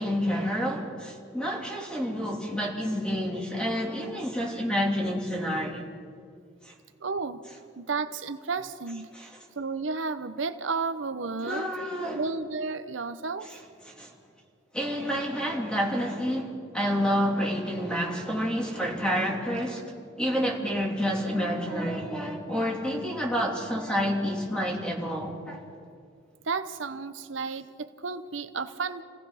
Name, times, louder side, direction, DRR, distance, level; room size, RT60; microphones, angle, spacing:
voice 1, 0.0-5.8 6.6-6.7 9.1-9.4 11.4-12.2 13.4-13.6 13.8-14.1 14.7-19.8 20.2-25.7, equal, 5° left, -1 dB, 3.1 m, -29 dB
voice 2, 7.0-7.4 7.8-9.1 9.6-11.7 12.1-13.5 26.4-29.0, right 4 dB, 90° right, 10 dB, 0.8 m, -32 dB
29.0 x 17.0 x 5.8 m, 2.3 s
head